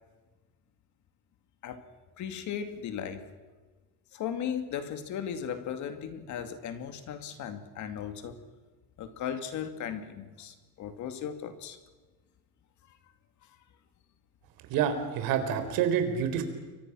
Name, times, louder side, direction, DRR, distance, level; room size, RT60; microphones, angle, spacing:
voice 1, 2.2-3.3 4.1-8.4 9.0-11.8, left 8 dB, 50° left, 9 dB, 2.3 m, -36 dB
voice 2, 14.7-16.4, right 8 dB, 65° right, 8 dB, 4.1 m, -27 dB
29.5 x 24.0 x 6.2 m, 1.3 s
cardioid pair, 150°, 37 cm